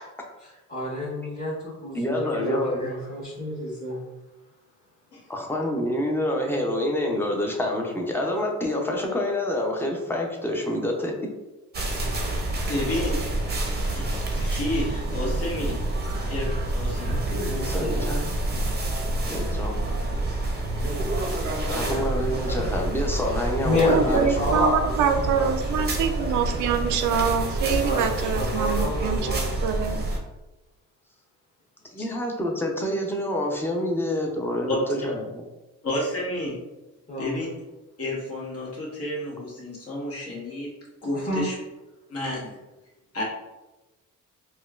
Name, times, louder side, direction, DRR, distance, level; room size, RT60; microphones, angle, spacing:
voice 1, 0.7-4.0 23.6-25.8 27.4-29.5 37.1-37.3 41.1-41.4, left 1 dB, 25° left, -11 dB, 1.5 m, -29 dB
voice 2, 1.9-2.8 5.3-11.1 17.6-18.2 19.3-19.8 21.7-24.6 31.9-35.2, left 1 dB, 5° left, 0 dB, 0.6 m, -27 dB
sound 1, 11.7-30.2, right 1 dB, 35° right, 0.7 m, -28 dB
voice 3, 12.7-13.2 13.9-15.8 16.3-17.9 34.7-34.8 35.8-36.6 37.2-37.5 38.0-40.7 41.0-41.5 42.1-42.6 43.1-43.2, left 1 dB, 50° left, -4 dB, 1.3 m, -31 dB
voice 4, 23.9-29.4 29.6-30.0, right 7 dB, 75° right, 6 dB, 0.5 m, -25 dB
4.1 x 2.3 x 2.4 m, 1.1 s
cardioid pair, 90°, 30 cm